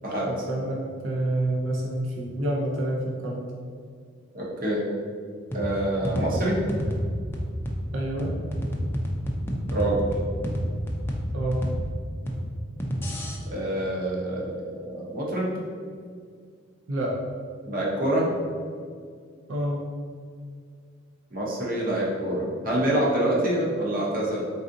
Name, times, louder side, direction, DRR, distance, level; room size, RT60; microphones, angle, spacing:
voice 1, 0.3-3.4 7.9-8.4 11.3-11.6 16.9-17.1 19.5-19.9, right 1 dB, 80° right, -2 dB, 0.6 m, -28 dB
voice 2, 4.3-4.8 5.5-6.6 9.7-10.0 13.5-15.5 17.6-18.3 21.3-24.5, right 1 dB, 45° right, -4 dB, 0.8 m, -26 dB
sound 1, 5.5-13.4, equal, 10° left, 0.4 m, -30 dB
3.9 x 3.7 x 2.6 m, 2.1 s
head